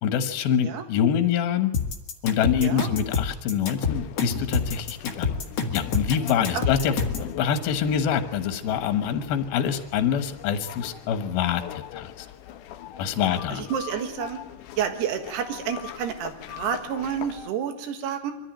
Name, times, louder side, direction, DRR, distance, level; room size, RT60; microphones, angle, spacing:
voice 1, 0.0-1.7 2.2-5.4 5.7-12.3 13.0-13.6, left 8 dB, 70° left, 8 dB, 2.9 m, -25 dB
sound 1, 1.7-7.3, left 5 dB, 55° left, 1.8 m, -27 dB
voice 2, 2.6-3.0 6.5-7.0 13.5-14.4 14.8-18.3, right 8 dB, 75° right, 7 dB, 3.6 m, -30 dB
sound 2, 3.7-17.5, left 12 dB, 90° left, 1.8 m, -42 dB
24.0 x 13.5 x 9.0 m, 1.0 s
omnidirectional pair, 4.8 m